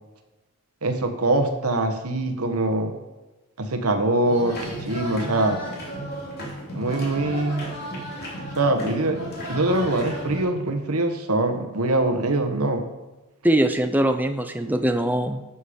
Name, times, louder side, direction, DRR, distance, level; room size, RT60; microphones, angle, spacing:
voice 1, 0.8-2.9 3.6-5.6 6.7-7.6 8.6-9.2 9.5-12.8, right 2 dB, 90° right, 6 dB, 1.3 m, -23 dB
sound 1, 4.2-10.4, equal, 45° left, 3.0 m, -34 dB
voice 2, 13.4-15.4, right 1 dB, 10° right, 7 dB, 0.5 m, -22 dB
12.0 x 7.1 x 5.2 m, 1.1 s
head